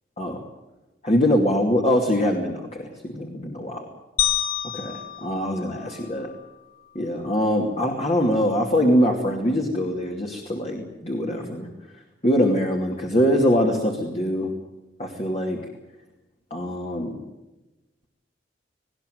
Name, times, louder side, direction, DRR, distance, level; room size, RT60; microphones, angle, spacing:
voice 1, 1.0-3.9 4.7-6.3 6.9-11.7 12.2-14.5 15.0-15.6 16.5-17.2, equal, 35° left, 1 dB, 2.7 m, -23 dB
sound 1, 4.2-6.5, left 11 dB, 55° left, 2.0 m, -28 dB
19.5 x 18.0 x 9.4 m, 1.0 s
head